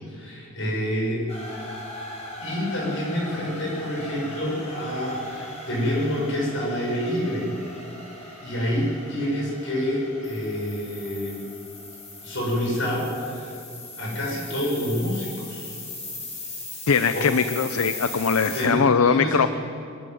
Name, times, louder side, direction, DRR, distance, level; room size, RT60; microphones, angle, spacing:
voice 1, 0.1-1.3 2.4-7.5 8.4-11.4 12.2-13.5 14.0-15.7 17.1-17.3 18.5-19.4, equal, 65° left, -3 dB, 7.0 m, -27 dB
sound 1, 1.3-18.6, left 2 dB, 30° left, 5.5 m, -39 dB
voice 2, 16.9-19.5, left 5 dB, 90° left, 11 dB, 0.6 m, -21 dB
23.0 x 13.0 x 9.5 m, 2.5 s
head